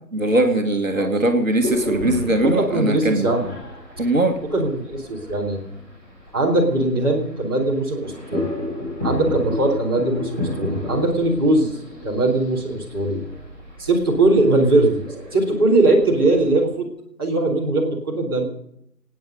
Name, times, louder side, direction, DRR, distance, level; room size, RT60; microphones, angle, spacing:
voice 1, 0.1-3.3 4.0-4.4, right 1 dB, 50° right, 4 dB, 1.8 m, -20 dB
voice 2, 0.9-1.3 2.4-3.5 4.5-5.6 6.3-8.5 9.0-13.2 13.8-15.0 15.3-16.9 17.2-18.4, right 2 dB, 15° right, -8 dB, 1.9 m, -20 dB
sound 1, 1.5-16.6, left 1 dB, 10° left, 4.7 m, -32 dB
26.0 x 9.4 x 5.3 m, 0.75 s
figure-of-eight pair, 180°, 49 cm